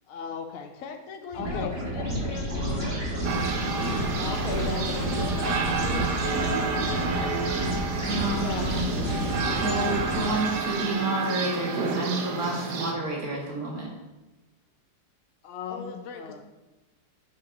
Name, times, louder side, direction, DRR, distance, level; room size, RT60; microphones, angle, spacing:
voice 1, 0.1-0.8 1.3-1.8 4.1-5.6 8.4-8.7 9.2-10.6 15.4-16.4, left 7 dB, 80° left, 5 dB, 0.5 m, -37 dB
voice 2, 0.8-3.3 4.6-7.5 15.7-16.4, left 5 dB, 60° left, 4 dB, 1.1 m, -41 dB
sound 1, 1.3-10.8, right 1 dB, 35° right, 1.7 m, -30 dB
sound 2, 3.2-12.9, right 4 dB, 75° right, 1.5 m, -30 dB
voice 3, 8.0-8.9 9.6-13.9, right 2 dB, 60° right, -3 dB, 2.3 m, -30 dB
6.5 x 5.7 x 5.3 m, 1.1 s
omnidirectional pair, 1.8 m